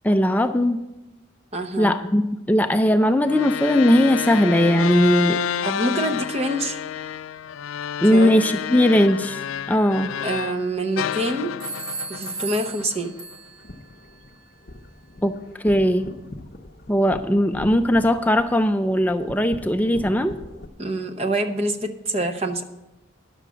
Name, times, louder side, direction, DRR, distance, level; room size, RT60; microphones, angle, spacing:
voice 1, 0.0-0.9 1.8-5.4 8.0-9.4 9.7-10.1 15.2-16.1 16.9-20.4, equal, 10° left, 8 dB, 0.3 m, -19 dB
voice 2, 1.5-1.9 5.7-6.8 8.1-8.3 10.2-11.5 12.1-13.1 20.8-22.6, right 1 dB, 30° right, 7 dB, 0.8 m, -26 dB
sound 1, 3.2-10.6 11.0-13.3, left 9 dB, 85° left, 0.3 m, -29 dB
sound 2, 10.4-11.1 11.6-13.8, right 4 dB, 70° right, 0.7 m, -36 dB
sound 3, 13.4-20.7, left 1 dB, 50° left, 0.7 m, -41 dB
10.5 x 6.9 x 6.1 m, 0.98 s
head